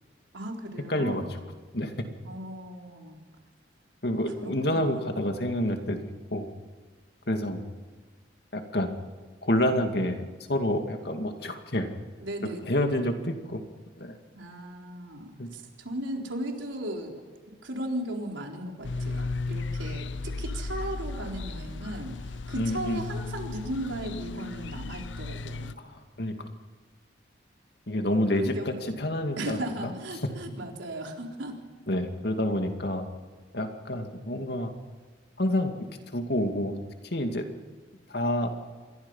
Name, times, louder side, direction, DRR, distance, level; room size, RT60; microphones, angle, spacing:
voice 1, 0.3-1.3 2.2-3.2 4.4-5.3 12.2-12.9 14.3-17.2 17.6-25.7 28.3-28.9 29.4-31.6 37.4-37.5, right 1 dB, 85° right, 1 dB, 4.1 m, -37 dB
voice 2, 0.9-1.2 1.7-1.9 4.0-6.4 7.3-7.7 8.5-8.9 9.4-11.9 12.7-13.6 14.0-14.1 15.4-15.5 22.6-23.0 25.8-26.4 27.9-29.9 31.9-33.0 33.5-34.7 35.4-35.7 36.1-36.7 37.1-37.5 38.1-38.5, left 1 dB, 60° left, 5 dB, 2.5 m, -28 dB
sound 1, 18.8-25.7, left 3 dB, 80° left, 0.8 m, -35 dB
27.5 x 22.0 x 5.7 m, 1.5 s
head